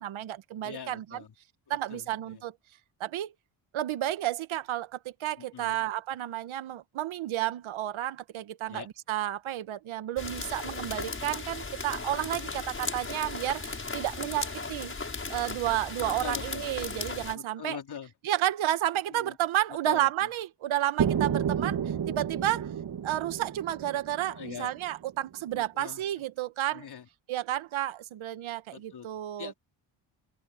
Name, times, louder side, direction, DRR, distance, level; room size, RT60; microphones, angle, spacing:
voice 1, 0.0-1.2 1.7-2.5 3.0-3.3 3.7-14.9 15.3-17.8 18.2-21.8 22.1-22.7 23.0-26.8 27.3-29.5, right 13 dB, 75° right, 1.5 m, -31 dB
voice 2, 0.6-1.3 1.7-2.4 5.4-5.8 8.7-8.9 12.2-12.6 16.2-16.7 17.3-18.1 19.1-19.4 19.7-20.3 20.6-20.7 21.6-21.7 24.3-24.7 25.5-26.2 26.7-27.1 28.7-29.1 29.4-29.6, left 8 dB, 50° left, 4.1 m, -43 dB
sound 1, 10.2-17.3, left 3 dB, 25° left, 7.0 m, -36 dB
sound 2, 21.0-24.9, right 8 dB, 50° right, 1.9 m, -31 dB
cardioid pair, 85°, 48 cm